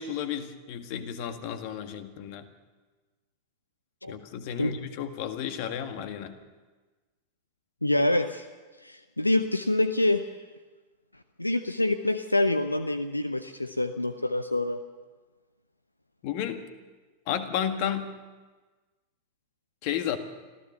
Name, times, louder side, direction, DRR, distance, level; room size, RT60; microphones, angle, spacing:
voice 1, 0.0-2.5 4.1-6.4 16.2-16.6 17.3-18.1 19.8-20.2, left 9 dB, 45° left, 8 dB, 1.8 m, -32 dB
voice 2, 7.8-8.5 8.8-10.3 11.4-14.8, left 1 dB, 85° left, 11 dB, 0.7 m, -26 dB
25.5 x 15.5 x 6.9 m, 1.3 s
figure-of-eight pair, 90°, 0 cm